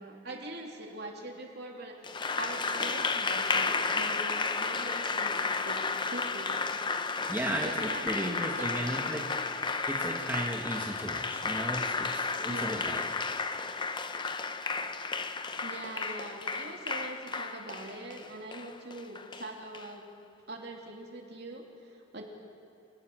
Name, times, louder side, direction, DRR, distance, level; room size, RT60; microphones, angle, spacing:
voice 1, 0.0-6.8 7.6-9.1 12.5-12.9 15.6-20.0 20.5-22.2, right 2 dB, 55° right, 1 dB, 3.0 m, -43 dB
Applause, 2.0-19.9, left 4 dB, 20° left, 0.7 m, -33 dB
voice 2, 7.3-9.2 9.9-13.0, right 1 dB, 10° right, 0 dB, 1.6 m, -35 dB
28.5 x 20.0 x 6.3 m, 2.7 s
head